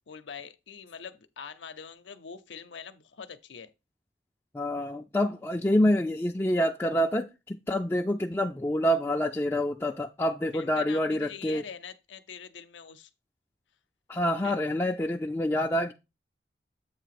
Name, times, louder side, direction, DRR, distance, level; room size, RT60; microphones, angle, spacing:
voice 1, 0.1-3.7 10.5-13.1 14.4-14.6, left 6 dB, 85° left, 0.6 m, -44 dB
voice 2, 4.5-11.6 14.1-15.9, equal, 15° left, 0.3 m, -27 dB
7.9 x 2.7 x 5.8 m
head